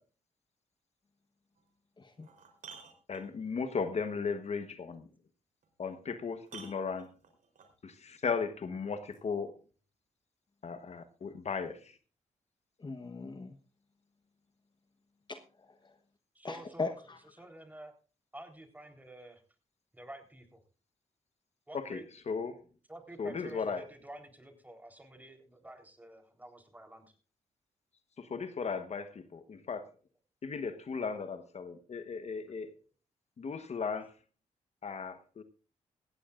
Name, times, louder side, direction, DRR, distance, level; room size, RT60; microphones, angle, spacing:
sound 1, 1.6-1.7 2.1-3.6 5.6-5.7 6.4-7.8 9.1-9.2, right 6 dB, 80° right, 3.7 m, -52 dB
voice 1, 2.0-2.3 12.8-13.6 15.3-15.9 16.4-17.2, left 3 dB, 35° left, 1.1 m, -39 dB
voice 2, 3.1-5.1 5.8-7.1 7.8-9.6 10.6-12.0 21.7-22.6 23.2-23.8 28.2-29.9 30.4-32.7 33.4-34.1 34.8-35.4, left 5 dB, 55° left, 1.2 m, -36 dB
voice 3, 16.3-17.0 17.4-17.9 18.3-19.4 19.9-20.6 21.7-22.1 22.9-27.2, right 1 dB, 10° right, 3.8 m, -49 dB
18.0 x 16.0 x 2.5 m
cardioid pair, 75°, 14 cm